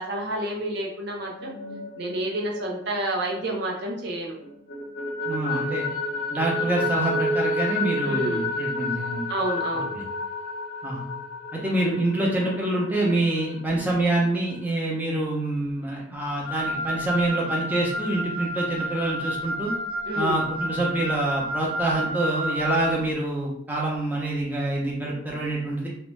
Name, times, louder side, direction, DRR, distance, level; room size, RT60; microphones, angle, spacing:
voice 1, 0.0-1.5 2.0-4.4 8.0-8.5 9.3-9.9 20.1-20.4, right 1 dB, 60° right, -1 dB, 0.6 m, -29 dB
sound 1, 1.2-4.1 4.4-13.8, left 2 dB, 55° left, 0.5 m, -31 dB
voice 2, 5.3-5.9 6.3-9.2 10.0-10.1 10.8-11.1 11.5-19.7 20.1-25.9, right 2 dB, 10° right, -4 dB, 0.6 m, -26 dB
Wind instrument woodwind instrument, 16.4-22.9, equal, 25° left, 0.9 m, -30 dB
2.6 x 2.1 x 3.1 m, 0.69 s
head